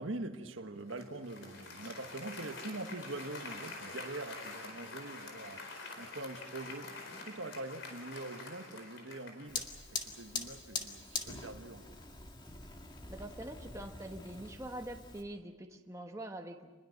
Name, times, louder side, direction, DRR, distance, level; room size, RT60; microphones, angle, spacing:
voice 1, 0.0-5.6 5.9-7.0 7.2-11.9, right 2 dB, 70° right, 1.5 m, -43 dB
Applause, 0.9-9.8, left 3 dB, 65° left, 4.5 m, -47 dB
Fire, 9.5-15.2, left 4 dB, 20° left, 2.0 m, -43 dB
voice 2, 13.0-16.7, right 1 dB, 15° right, 1.2 m, -44 dB
27.0 x 21.5 x 6.6 m
head